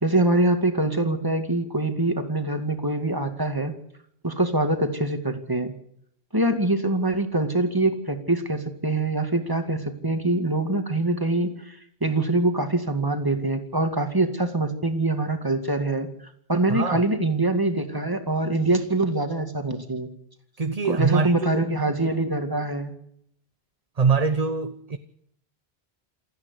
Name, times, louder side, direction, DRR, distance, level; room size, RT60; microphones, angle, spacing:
voice 1, 0.0-3.7 4.2-5.7 6.3-16.1 16.5-20.1 20.9-22.9, right 2 dB, 20° right, 2.2 m, -24 dB
voice 2, 16.7-17.0 20.6-21.6 24.0-25.0, right 5 dB, 40° right, 1.0 m, -23 dB
28.5 x 9.6 x 9.8 m
omnidirectional pair, 1.1 m